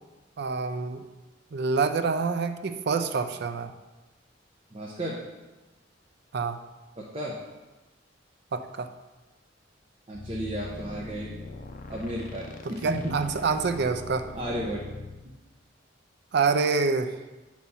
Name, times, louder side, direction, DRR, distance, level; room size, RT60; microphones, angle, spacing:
voice 1, 0.4-1.0 1.5-3.7 6.3-6.6 8.5-8.9 12.8-14.3 16.3-17.1, right 4 dB, 60° right, 8 dB, 0.5 m, -26 dB
voice 2, 4.7-5.2 7.0-7.4 10.1-11.3 11.9-13.2 14.3-14.8 15.2-15.4, right 1 dB, 30° right, -4 dB, 0.8 m, -33 dB
sound 1, 10.1-15.2, left 3 dB, 45° left, 0.6 m, -41 dB
8.3 x 3.1 x 5.4 m, 1.1 s
head